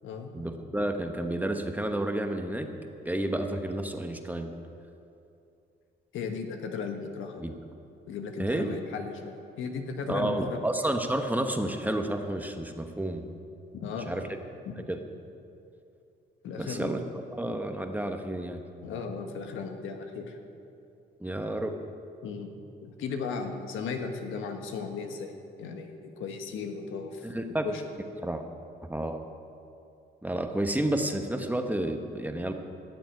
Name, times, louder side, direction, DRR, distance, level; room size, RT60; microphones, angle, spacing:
voice 1, 0.3-2.7 3.0-4.5 7.4-7.5 8.4-8.7 10.1-13.2 14.1-14.2 14.9-15.0 16.6-17.0 17.3-18.6 21.2-21.7 27.2-27.7 28.2-28.4 28.8-29.2 30.2-32.5, right 1 dB, 10° right, 5 dB, 1.1 m, -30 dB
voice 2, 6.1-7.4 8.1-10.6 13.7-14.3 14.6-14.9 16.4-16.9 18.8-20.4 22.2-22.5 22.8-27.3 27.6-27.8, left 5 dB, 85° left, 4 dB, 1.5 m, -36 dB
14.0 x 7.2 x 9.5 m, 2.6 s
cardioid pair, 90°, 20 cm